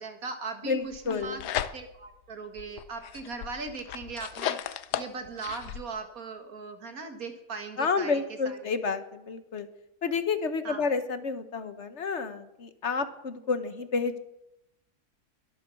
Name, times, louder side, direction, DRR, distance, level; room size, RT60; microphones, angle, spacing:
voice 1, 0.0-1.4 1.7-8.7 10.6-10.9, right 4 dB, 60° right, 6 dB, 2.1 m, -39 dB
voice 2, 0.6-1.4 7.8-9.7 10.0-14.2, left 5 dB, 50° left, 11 dB, 1.3 m, -30 dB
sound 1, 0.9-2.1 2.6-5.8, left 11 dB, 80° left, 1.3 m, -35 dB
22.0 x 8.5 x 7.0 m, 0.86 s
omnidirectional pair, 1.7 m